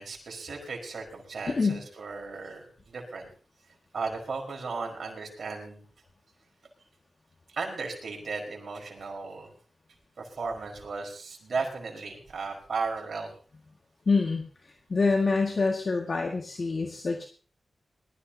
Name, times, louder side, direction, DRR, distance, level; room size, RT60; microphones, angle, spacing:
voice 1, 0.0-3.3 3.9-5.8 7.5-9.5 10.2-13.3, right 4 dB, 75° right, 1 dB, 4.8 m, -35 dB
voice 2, 1.5-1.8 14.1-14.5 14.9-17.3, left 4 dB, 60° left, 2 dB, 1.9 m, -26 dB
21.0 x 14.0 x 2.8 m, 0.39 s
cardioid pair, 55°, 0 cm